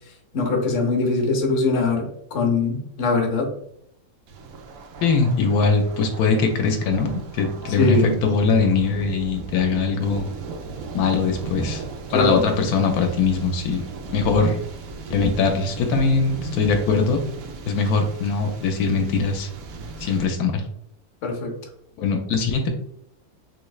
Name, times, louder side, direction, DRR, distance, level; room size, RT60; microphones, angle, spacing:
voice 1, 0.3-3.5 7.8-8.1 12.1-12.4 21.2-21.5, left 3 dB, 60° left, 1 dB, 1.0 m, -22 dB
Thunder, 4.3-20.3, right 4 dB, 70° right, 0.9 m, -36 dB
voice 2, 5.0-10.3 10.9-11.8 12.1-13.8 14.1-14.6 15.1-17.2 17.7-19.5 20.0-20.6 22.0-22.7, left 4 dB, 90° left, 4 dB, 1.1 m, -21 dB
3.4 x 3.1 x 2.3 m, 0.72 s
omnidirectional pair, 1.6 m